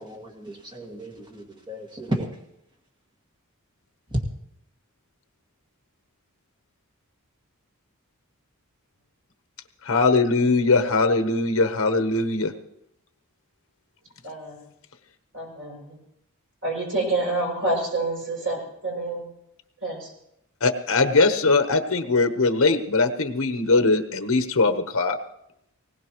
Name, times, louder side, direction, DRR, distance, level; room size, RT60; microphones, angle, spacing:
voice 1, 0.0-2.3 4.1-4.2, right 1 dB, 20° right, -1 dB, 2.0 m, -32 dB
voice 2, 9.9-12.5 20.6-25.2, left 3 dB, 65° left, 7 dB, 1.1 m, -21 dB
voice 3, 14.2-14.6 15.3-16.0 16.6-19.3 19.8-20.1, right 2 dB, 60° right, -1 dB, 6.9 m, -28 dB
20.0 x 18.0 x 3.1 m, 0.79 s
head